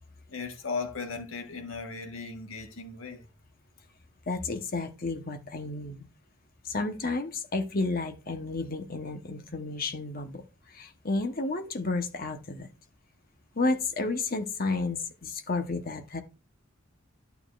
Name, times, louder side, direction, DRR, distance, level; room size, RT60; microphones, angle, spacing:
voice 1, 0.3-3.3, left 4 dB, 85° left, 1.4 m, -37 dB
voice 2, 4.3-6.1 6.6-12.7 13.5-16.2, left 3 dB, 45° left, 1.1 m, -31 dB
11.5 x 7.1 x 2.5 m
head